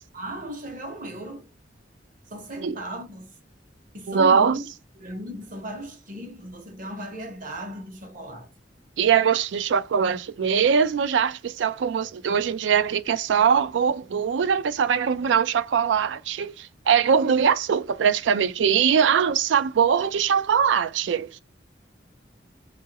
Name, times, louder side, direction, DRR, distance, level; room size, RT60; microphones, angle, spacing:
voice 1, 0.1-1.5 2.3-3.3 3.9-4.6 5.0-8.5, right 1 dB, 50° right, 1.0 m, -36 dB
voice 2, 4.1-4.6 9.0-21.4, right 7 dB, 90° right, 0.4 m, -22 dB
2.8 x 2.5 x 2.8 m
head